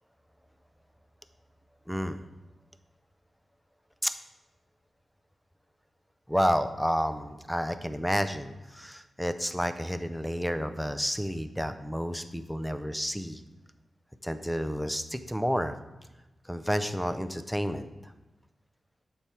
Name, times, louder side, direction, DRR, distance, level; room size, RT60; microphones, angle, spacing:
voice 1, 1.9-2.2 4.0-4.1 6.3-13.4 14.2-15.8 16.4-18.1, equal, ahead, 10 dB, 0.4 m, -30 dB
6.7 x 4.7 x 4.3 m, 1.1 s
wide cardioid pair, 115°, 0 cm